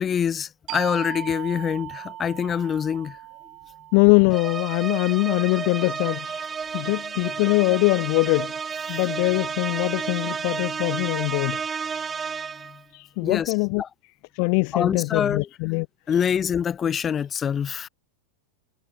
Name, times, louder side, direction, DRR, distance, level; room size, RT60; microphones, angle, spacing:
voice 1, 0.0-3.2 12.6-12.8 13.2-13.5 13.8-13.9 14.7-15.5 16.1-17.9, left 8 dB, 25° left, 0.9 m, -25 dB
sound 1, 0.7-6.0, right 19 dB, 40° right, 2.1 m, -39 dB
voice 2, 3.9-6.4 6.7-8.5 8.9-11.6 11.9-12.1 12.9-13.8 14.3-15.9, left 40 dB or more, 45° left, 0.3 m, -22 dB
sound 2, 4.3-12.8, right 6 dB, 20° right, 1.2 m, -31 dB
figure-of-eight pair, 90°, 0 cm